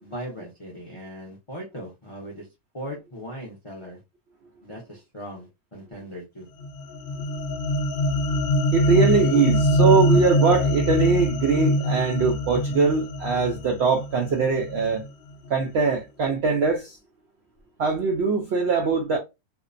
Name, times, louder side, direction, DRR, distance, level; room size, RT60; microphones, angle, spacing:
voice 1, 0.0-2.5 2.7-4.0 4.6-6.5, equal, 50° left, 0.3 m, -38 dB
sound 1, 6.6-15.1, left 1 dB, 70° left, 0.8 m, -24 dB
voice 2, 8.7-15.0 15.5-17.0 17.8-19.2, right 4 dB, 90° right, 0.5 m, -22 dB
2.7 x 2.1 x 2.4 m
omnidirectional pair, 1.7 m